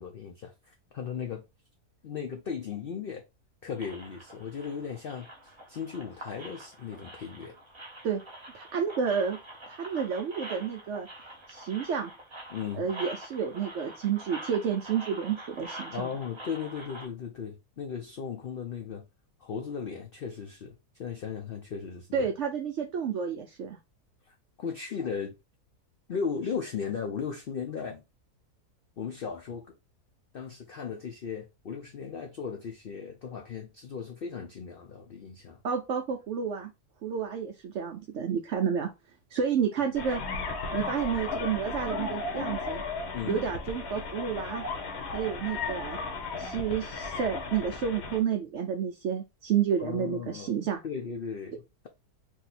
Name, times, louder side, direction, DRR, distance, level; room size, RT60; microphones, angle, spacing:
voice 1, 0.0-1.4 2.0-3.2 3.6-7.6 12.5-12.9 15.9-19.0 19.4-22.3 24.6-25.3 26.1-28.0 29.0-29.7 30.3-35.6 43.1-43.4 49.8-50.5 50.8-51.9, left 6 dB, 90° left, 0.5 m, -36 dB
sound 1, 3.8-17.1, right 1 dB, 25° right, 0.8 m, -45 dB
voice 2, 8.5-9.4 9.7-11.1 11.5-12.1 12.8-16.1 22.1-23.8 35.6-36.7 37.0-38.9 39.3-40.2 40.7-42.8 43.2-44.6 45.1-46.0 46.4-50.8, right 7 dB, 70° right, 0.7 m, -30 dB
sound 2, 39.9-48.2, left 4 dB, 55° left, 0.9 m, -35 dB
2.8 x 2.7 x 4.0 m
omnidirectional pair, 1.7 m